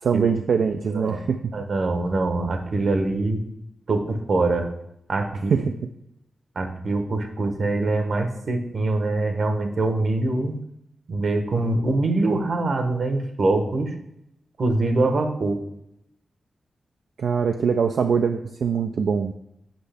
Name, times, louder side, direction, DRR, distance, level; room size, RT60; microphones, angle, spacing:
voice 1, 0.0-1.5 5.5-5.7 17.2-19.3, right 6 dB, 80° right, 6 dB, 0.3 m, -23 dB
voice 2, 0.9-1.2 1.5-3.4 3.9-4.7 5.1-5.7 6.5-10.6 11.1-13.9 14.6-15.6, right 2 dB, 60° right, 6 dB, 1.0 m, -24 dB
8.0 x 5.4 x 3.4 m, 0.80 s
wide cardioid pair, 90°, 0 cm